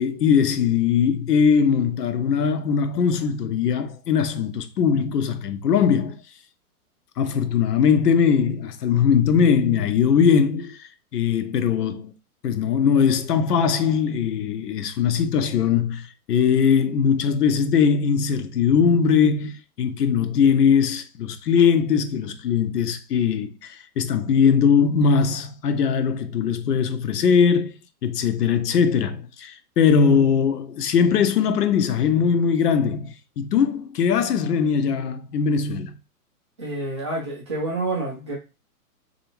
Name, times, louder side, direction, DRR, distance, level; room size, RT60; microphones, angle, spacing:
voice 1, 0.0-6.2 7.2-12.1 12.4-35.9, left 6 dB, 90° left, 0.7 m, -20 dB
voice 2, 36.6-38.3, right 2 dB, 20° right, 0.3 m, -28 dB
3.3 x 2.6 x 2.9 m
hypercardioid pair, 135°, 46 cm